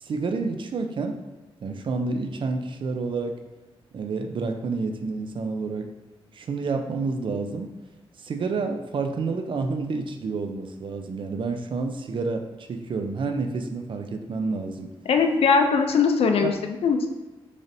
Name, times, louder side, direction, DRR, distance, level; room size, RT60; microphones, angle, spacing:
voice 1, 0.0-1.2 1.6-3.4 3.9-5.9 6.3-7.7 8.2-14.9 16.4-16.5, right 4 dB, 55° right, 6 dB, 0.4 m, -29 dB
voice 2, 15.1-17.1, left 5 dB, 75° left, 5 dB, 0.4 m, -21 dB
3.9 x 3.2 x 2.7 m, 1.1 s
cardioid pair, 95°, 10 cm